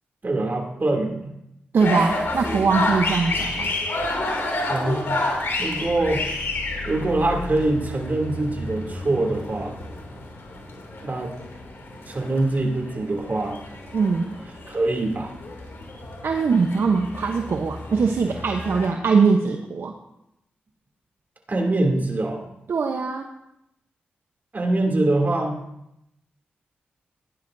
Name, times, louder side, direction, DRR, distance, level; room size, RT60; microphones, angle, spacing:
voice 1, 0.2-1.3 4.6-5.0 5.6-6.3 6.8-9.7 11.0-11.3 12.1-13.6 14.7-15.3 21.5-22.4 24.5-25.6, right 2 dB, 45° right, 1 dB, 2.8 m, -24 dB
voice 2, 1.7-3.7 13.9-14.3 16.2-19.9 22.7-23.3, right 5 dB, 70° right, 3 dB, 0.9 m, -21 dB
sound 1, 1.8-18.9, left 2 dB, 70° left, 2.7 m, -30 dB
16.5 x 10.5 x 2.7 m, 0.82 s
supercardioid pair, 40°, 4 cm